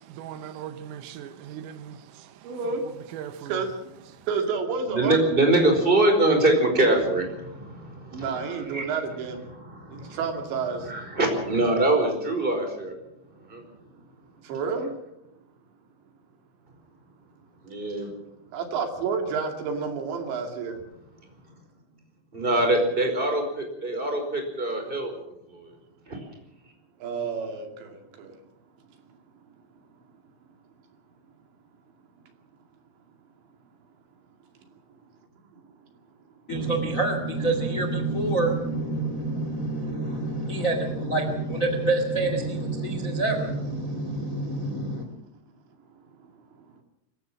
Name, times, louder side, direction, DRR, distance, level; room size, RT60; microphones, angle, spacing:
voice 1, 0.0-3.6 4.1-4.3, right 9 dB, 80° right, 3.8 m, -40 dB
voice 2, 2.4-2.8 3.4-3.7 4.3-5.5 8.1-9.4 9.9-10.8 14.4-14.9 18.5-20.8 27.0-28.3, right 5 dB, 65° right, 4.4 m, -30 dB
voice 3, 4.9-8.9 9.7-10.2 10.9-12.9 13.5-13.6 17.6-18.1 22.3-25.1 25.5-25.7 26.1-26.2, right 2 dB, 10° right, 4.4 m, -24 dB
voice 4, 36.5-45.1, right 2 dB, 65° left, 0.8 m, -27 dB
24.5 x 15.0 x 7.4 m
omnidirectional pair, 5.9 m